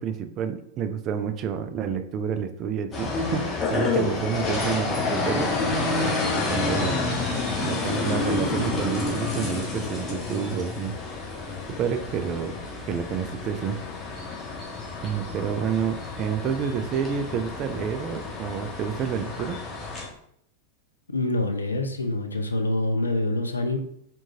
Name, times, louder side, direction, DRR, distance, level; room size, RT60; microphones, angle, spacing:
voice 1, 0.0-5.5 6.4-7.1 7.6-11.0 11.7-12.6 12.9-13.8 15.0-19.6, right 7 dB, 35° right, 8 dB, 0.4 m, -29 dB
sound 1, 2.9-20.1, left 3 dB, 20° left, 1.4 m, -29 dB
voice 2, 21.1-23.8, left 2 dB, 80° left, 6 dB, 0.5 m, -26 dB
4.4 x 4.3 x 2.7 m, 0.69 s
figure-of-eight pair, 90°, 0 cm